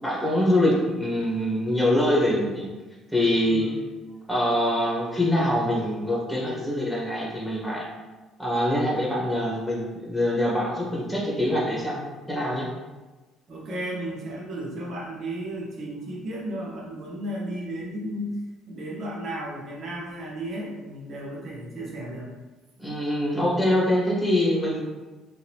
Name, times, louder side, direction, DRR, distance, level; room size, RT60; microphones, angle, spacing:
voice 1, 0.0-2.7 3.1-3.7 4.3-7.8 8.4-12.7 22.8-24.8, left 1 dB, ahead, -5 dB, 1.3 m, -24 dB
voice 2, 13.5-18.4 18.7-22.3, right 1 dB, 55° right, -3 dB, 1.1 m, -34 dB
3.7 x 2.6 x 3.0 m, 1.2 s
cardioid pair, 90°, 0 cm